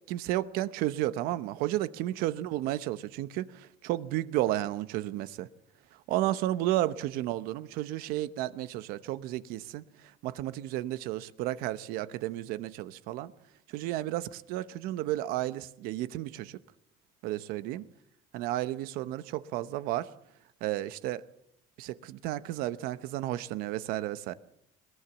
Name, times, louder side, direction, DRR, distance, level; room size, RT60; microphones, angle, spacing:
voice 1, 0.1-5.5 6.1-9.8 10.2-13.3 13.7-16.6 17.2-17.8 18.3-20.1 20.6-21.2 21.8-24.3, right 15 dB, 80° right, 1.0 m, -32 dB
21.0 x 18.5 x 7.3 m
cardioid pair, 115°, 15 cm